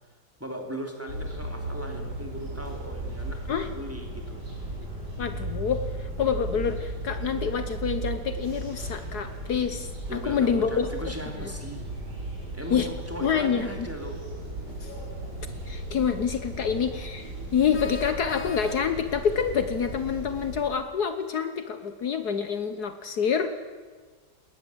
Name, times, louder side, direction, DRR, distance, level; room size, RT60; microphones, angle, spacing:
voice 1, 0.4-4.5 10.1-11.8 12.5-14.2, equal, 10° right, 2 dB, 3.2 m, -38 dB
sound 1, 1.1-20.6, right 1 dB, 65° right, 6.8 m, -36 dB
voice 2, 5.2-10.9 12.7-12.9 13.2-13.9 14.8-14.9 15.7-23.5, left 7 dB, 65° left, 9 dB, 1.6 m, -27 dB
sound 2, 17.7-19.2, left 4 dB, 45° left, 2.2 m, -39 dB
21.0 x 18.5 x 8.0 m, 1.5 s
omnidirectional pair, 1.9 m